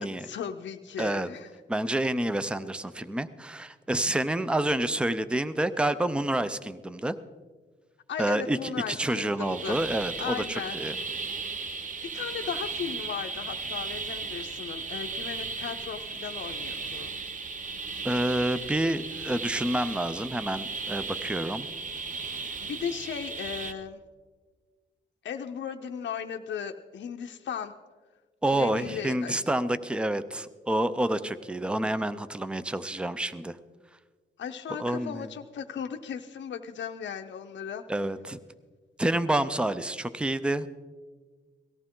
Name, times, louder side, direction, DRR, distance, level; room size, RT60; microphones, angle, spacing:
voice 1, 0.0-1.5 8.1-9.8 10.2-10.8 12.1-17.1 22.6-24.0 25.2-27.7 28.5-29.4 34.4-37.8, left 7 dB, 75° left, 4 dB, 0.6 m, -36 dB
voice 2, 1.0-1.3 1.7-7.2 8.2-10.9 18.0-21.7 28.4-33.6 34.8-35.3 37.9-38.4 39.0-40.7, right 1 dB, 5° right, 14 dB, 0.4 m, -28 dB
sound 1, 9.4-23.7, right 4 dB, 45° right, 0.8 m, -36 dB
18.5 x 14.5 x 3.7 m, 1.4 s
wide cardioid pair, 155°, 19 cm